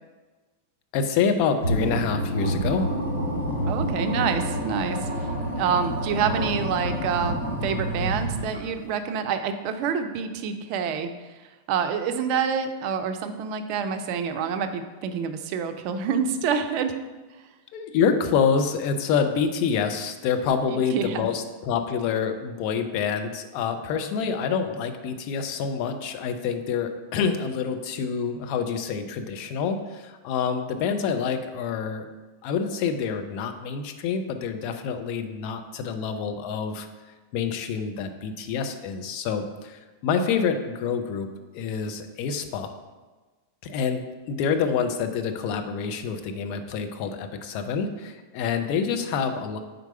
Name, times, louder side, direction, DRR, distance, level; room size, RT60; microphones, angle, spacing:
voice 1, 0.9-2.9 17.7-32.1 32.4-36.9 37.3-41.3 41.5-42.7 43.6-49.6, left 6 dB, 45° left, 6 dB, 0.6 m, -27 dB
sound 1, 1.6-8.9, equal, 80° left, 1.1 m, -28 dB
voice 2, 3.6-5.0 5.5-11.1 11.7-16.9 20.7-21.3, right 6 dB, 45° right, 8 dB, 0.5 m, -27 dB
sound 2, 4.0-9.9, right 1 dB, 10° left, 1.9 m, -43 dB
4.6 x 3.9 x 5.6 m, 1.3 s
figure-of-eight pair, 90°, 0 cm